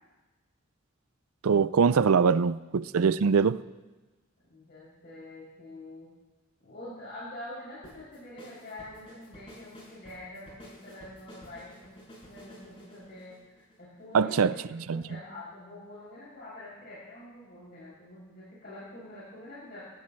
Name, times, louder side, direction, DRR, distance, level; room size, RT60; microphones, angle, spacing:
voice 1, 1.4-3.6 14.1-14.5 14.9-15.0, right 5 dB, 85° right, 16 dB, 0.5 m, -23 dB
voice 2, 4.5-6.1 6.6-19.8, left 1 dB, 50° left, -10 dB, 7.0 m, -46 dB
sound 1, 7.8-14.1, equal, 25° left, 5.8 m, -51 dB
28.0 x 16.0 x 3.2 m, 1.2 s
head